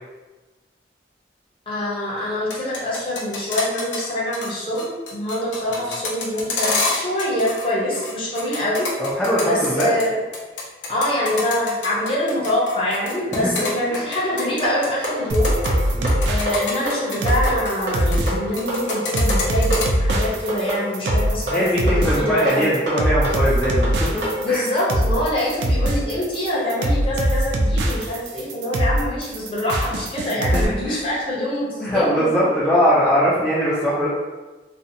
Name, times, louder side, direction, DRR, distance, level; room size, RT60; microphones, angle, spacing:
voice 1, 1.7-8.9 9.4-10.2 10.9-15.6 16.3-22.7 24.4-32.3, left 1 dB, 30° left, -7 dB, 0.7 m, -25 dB
sound 1, 2.4-4.1 4.3-4.5 4.8-7.7 7.9-10.0 10.3-15.1 15.3-15.7 16.1-18.3 18.6-19.9, left 3 dB, 90° left, 0.6 m, -27 dB
voice 2, 9.0-10.0 13.9-14.1 15.9-16.2 21.5-24.6 30.5-31.0 31.8-34.1, equal, 5° left, -10 dB, 0.3 m, -21 dB
sound 2, 14.6-24.4, right 1 dB, 60° right, 0.8 m, -27 dB
sound 3, 15.3-30.7, right 1 dB, 80° right, 0.3 m, -22 dB
2.5 x 2.1 x 2.6 m, 1.2 s
head